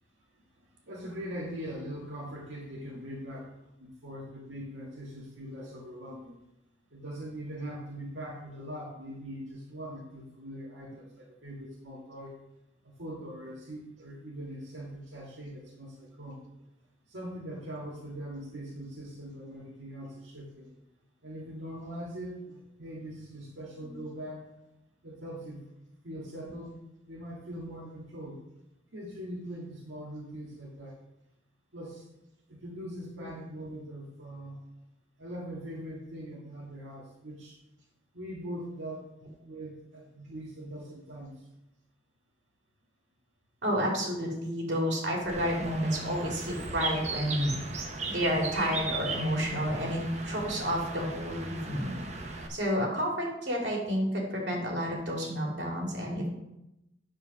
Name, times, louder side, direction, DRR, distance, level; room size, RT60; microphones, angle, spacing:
voice 1, 0.9-3.5 3.8-6.4 6.9-12.3 12.8-16.4 17.1-20.7 21.2-24.4 25.0-25.6 26.0-26.8 27.0-28.4 28.9-31.0 31.7-32.0 32.5-34.6 35.2-37.5 38.1-39.0 39.4-41.3, equal, 90° right, -4 dB, 1.8 m, -41 dB
voice 2, 43.6-47.6 48.1-52.0 52.5-56.3, equal, 65° right, -2 dB, 2.9 m, -30 dB
Bird, 45.3-52.5, right 3 dB, 35° right, 1.0 m, -37 dB
8.7 x 4.9 x 6.2 m, 0.88 s
head